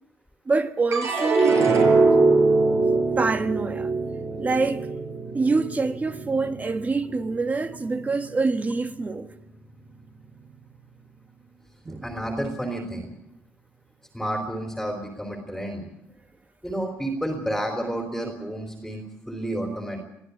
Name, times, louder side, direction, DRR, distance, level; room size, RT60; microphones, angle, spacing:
voice 1, 0.4-1.6 3.2-3.9 4.4-4.9 5.3-9.3 11.8-12.1, right 3 dB, 25° right, 1.5 m, -25 dB
sound 1, 0.9-7.3 7.8-8.5, right 3 dB, 55° right, 5.9 m, -22 dB
voice 2, 12.0-13.2 14.1-15.8 16.6-20.0, right 1 dB, ahead, 3.5 m, -30 dB
23.0 x 14.5 x 8.2 m
cardioid pair, 115°, 6 cm